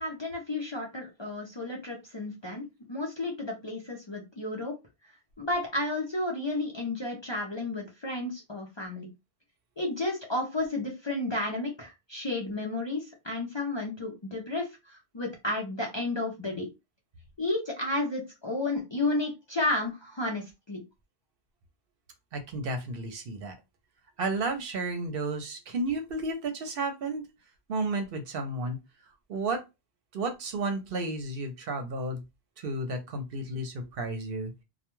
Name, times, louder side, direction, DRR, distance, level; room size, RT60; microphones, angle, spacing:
voice 1, 0.0-4.7 5.4-9.1 9.8-16.7 17.4-20.8, left 2 dB, 35° left, 0 dB, 0.5 m, -32 dB
voice 2, 22.3-23.6 24.2-27.2 27.7-28.8 29.3-29.6 30.1-32.2 32.6-34.5, right 2 dB, 70° right, 7 dB, 0.8 m, -32 dB
2.2 x 2.2 x 2.9 m, 0.23 s
omnidirectional pair, 1.0 m